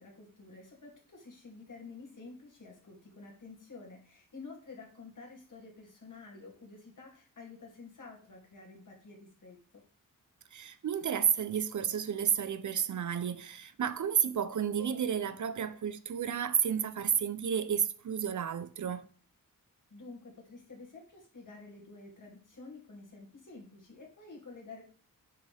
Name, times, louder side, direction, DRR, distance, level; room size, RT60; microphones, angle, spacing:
voice 1, 0.0-9.6 19.9-24.8, left 3 dB, 60° left, 2.7 m, -50 dB
voice 2, 10.5-19.1, right 8 dB, 60° right, 0.6 m, -31 dB
6.6 x 5.1 x 3.4 m
cardioid pair, 65°, 34 cm